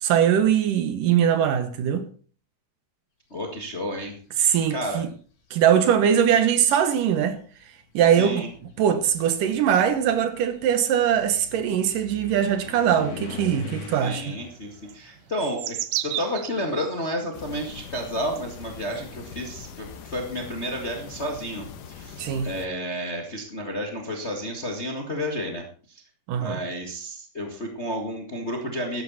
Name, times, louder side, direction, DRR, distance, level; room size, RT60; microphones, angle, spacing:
voice 1, 0.0-2.1 4.4-5.1 5.5-7.4 7.9-8.5 8.8-14.2 22.2-22.5 26.3-26.6, right 9 dB, 70° right, 2.6 m, -21 dB
voice 2, 3.3-5.0 8.2-8.5 14.0-26.0 26.4-29.0, equal, 30° left, 1.2 m, -31 dB
sound 1, 4.6-5.2 6.1-6.2 6.8-16.7 17.0-19.6, left 4 dB, 45° left, 3.5 m, -43 dB
sound 2, 14.9-17.0 17.7-17.8 18.4-19.0, right 13 dB, 85° right, 1.5 m, -31 dB
sound 3, 17.3-22.7, left 7 dB, 65° left, 2.6 m, -42 dB
13.0 x 12.0 x 4.2 m
omnidirectional pair, 4.2 m